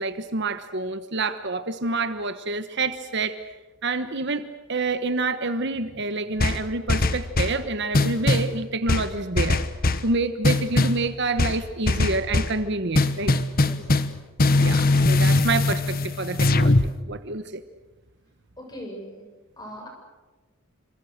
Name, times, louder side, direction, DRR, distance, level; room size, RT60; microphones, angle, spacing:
voice 1, 0.0-3.3 3.8-9.6 10.0-13.3 14.6-16.8 17.1-17.6, right 3 dB, 55° right, 10 dB, 1.2 m, -27 dB
sound 1, 6.4-7.6 7.9-8.5 8.9-10.1 10.4-11.0 11.4-12.6 12.9-14.1 14.4-16.9, left 2 dB, 45° left, 1.2 m, -21 dB
voice 2, 13.6-14.1 18.6-19.2 19.6-19.9, equal, 20° left, 2 dB, 7.2 m, -40 dB
28.5 x 26.5 x 6.7 m, 1.2 s
head